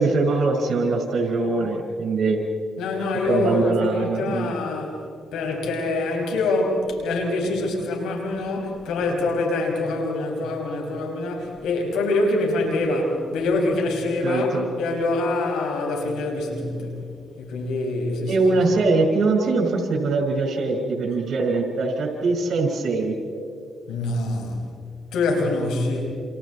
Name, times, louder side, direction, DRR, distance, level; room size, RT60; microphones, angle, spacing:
voice 1, 0.0-2.4 3.3-4.5 14.2-14.7 18.3-23.1, right 3 dB, 65° right, 2 dB, 5.0 m, -22 dB
voice 2, 2.8-5.0 5.3-14.5 14.8-17.0 17.4-18.5 23.9-24.6 25.1-26.0, left 2 dB, 85° left, 1 dB, 5.8 m, -25 dB
29.0 x 28.5 x 4.2 m, 2.4 s
cardioid pair, 70°, 0 cm